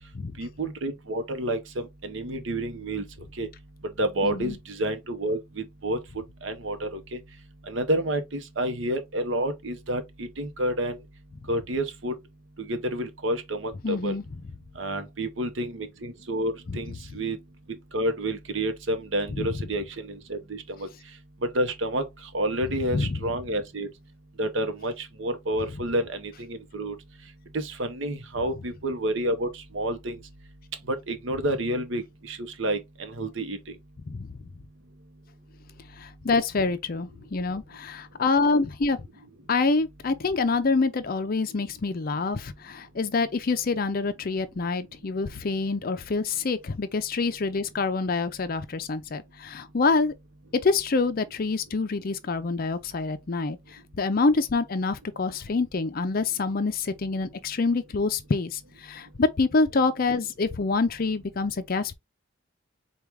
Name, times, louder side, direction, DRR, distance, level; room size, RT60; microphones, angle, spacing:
voice 1, 0.4-3.0 3.4-3.5 4.0-6.0 6.4-7.2 7.7-11.0 11.5-12.1 12.6-14.2 14.8-17.4 17.9-20.9 21.4-22.0 22.3-23.9 24.4-26.9 27.5-30.2 30.9-33.6, right 1 dB, 65° right, 0.8 m, -29 dB
voice 2, 4.2-4.6 13.8-14.2 16.7-16.8 19.3-19.5 22.9-23.2 34.1-34.4 36.0-39.0 39.5-50.1 50.6-53.6 53.9-61.9, left 3 dB, 45° left, 0.5 m, -26 dB
4.5 x 2.3 x 3.4 m
head